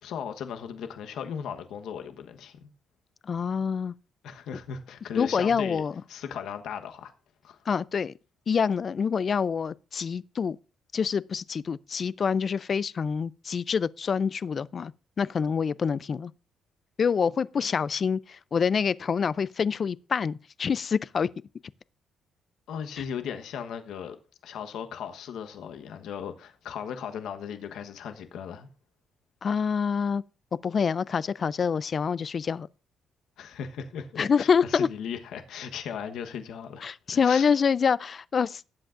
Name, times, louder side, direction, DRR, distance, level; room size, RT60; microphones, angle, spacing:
voice 1, 0.0-2.7 4.2-5.8 6.1-7.1 7.4-7.6 22.7-24.2 24.4-28.7 33.4-36.9 37.2-37.5, left 7 dB, 80° left, 1.1 m, -37 dB
voice 2, 3.2-3.9 5.1-5.9 7.7-8.1 8.5-10.6 10.9-14.9 15.2-16.3 17.0-21.3 29.4-30.2 30.6-32.7 34.2-34.9 36.8-38.6, left 6 dB, 45° left, 0.4 m, -26 dB
17.5 x 7.8 x 2.5 m
cardioid pair, 90°, 0 cm